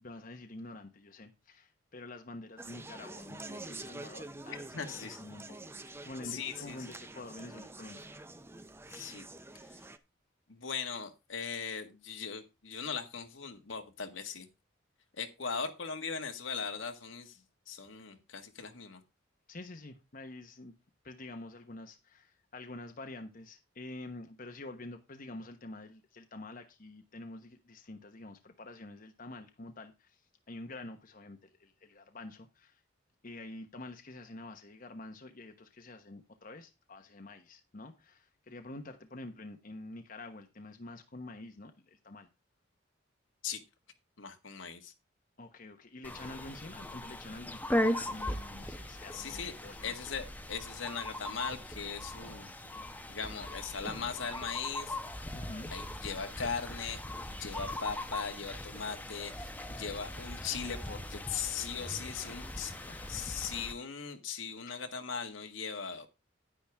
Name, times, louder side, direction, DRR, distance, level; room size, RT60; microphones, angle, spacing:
voice 1, 0.0-8.0 19.5-20.7 21.0-30.2 30.5-32.8 33.2-42.3 45.4-49.9 55.3-55.7 61.9-63.2 64.7-64.8, left 2 dB, 45° left, 1.2 m, -47 dB
Conversation, 2.6-10.0, right 2 dB, 10° right, 0.7 m, -47 dB
voice 2, 4.7-5.2 6.2-6.8 8.9-9.2 9.6-9.8 10.5-14.5 15.2-17.4 17.7-19.0 43.4-43.6 44.2-44.9 49.1-49.5 49.8-52.5 53.1-55.0 55.7-57.0 57.4-62.7 63.1-66.1, left 6 dB, 80° left, 1.8 m, -39 dB
sound 1, 46.0-63.7, left 1 dB, 10° left, 1.0 m, -39 dB
sound 2, 48.0-61.3, right 1 dB, 85° right, 1.9 m, -59 dB
10.5 x 10.0 x 3.5 m
head